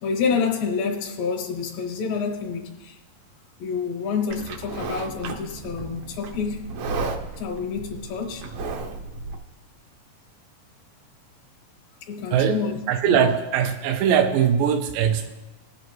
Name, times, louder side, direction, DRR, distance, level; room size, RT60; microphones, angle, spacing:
voice 1, 0.0-3.0 3.6-6.6 7.4-8.5 12.0-13.3, left 5 dB, 80° left, 2.7 m, -28 dB
Livestock farm animals working animals, 4.3-9.4, right 3 dB, 70° right, 1.7 m, -33 dB
voice 2, 12.9-15.3, right 8 dB, 85° right, 2.3 m, -21 dB
21.0 x 7.9 x 3.0 m
omnidirectional pair, 4.0 m